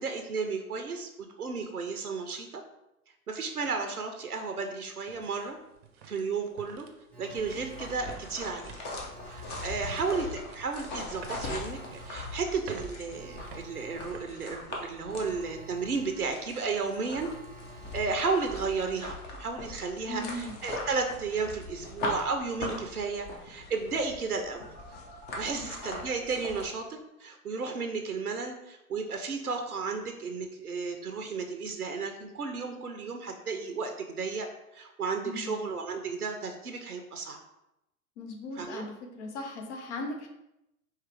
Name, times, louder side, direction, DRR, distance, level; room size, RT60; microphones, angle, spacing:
voice 1, 0.0-2.6 3.3-5.6 6.1-6.9 7.2-8.7 9.3-17.3 17.9-24.7 25.4-34.5 34.7-37.4 38.6-38.9, right 4 dB, 90° right, 5 dB, 0.7 m, -33 dB
sound 1, 3.6-3.7 4.3-15.2 15.6-15.7 16.3-16.6, right 7 dB, 45° right, 0.7 m, -51 dB
Alarm, 7.1-19.0 24.5-26.0, right 1 dB, 5° left, 1.4 m, -51 dB
sound 2, 7.4-26.7, left 2 dB, 25° left, 0.8 m, -41 dB
voice 2, 20.1-20.6 25.5-25.7 35.2-35.6 38.2-40.3, left 2 dB, 50° left, 2 dB, 1.0 m, -38 dB
4.7 x 3.0 x 3.4 m, 0.86 s
figure-of-eight pair, 100°, 43 cm